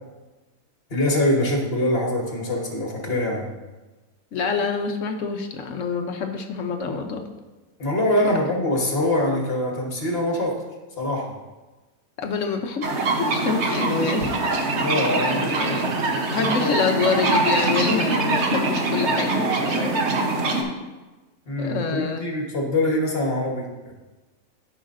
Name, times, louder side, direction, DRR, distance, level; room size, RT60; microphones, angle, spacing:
voice 1, 0.9-3.5 7.8-10.6 11.0-11.4 14.8-16.0 16.4-16.8 21.5-23.9, left 1 dB, 45° left, 0 dB, 1.5 m, -24 dB
voice 2, 4.3-7.3 8.3-8.4 12.2-12.8 13.2-14.4 15.2-15.8 16.3-19.9 21.6-22.2, left 5 dB, 65° left, 5 dB, 1.0 m, -26 dB
sound 1, 12.8-20.6, right 2 dB, 55° right, 1.1 m, -23 dB
13.0 x 5.5 x 2.5 m, 1.2 s
omnidirectional pair, 1.5 m